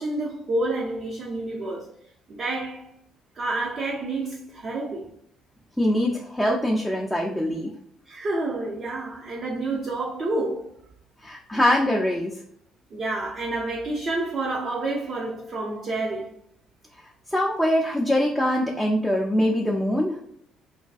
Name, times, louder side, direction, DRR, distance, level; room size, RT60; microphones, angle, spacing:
voice 1, 0.0-1.9 2.3-2.9 3.3-5.1 8.1-10.8 12.9-16.4, right 2 dB, 45° right, 0.5 m, -29 dB
voice 2, 5.8-7.7 11.2-12.4 17.3-20.2, left 1 dB, 10° left, 0.4 m, -23 dB
2.5 x 2.2 x 2.3 m
hypercardioid pair, 50°, 0 cm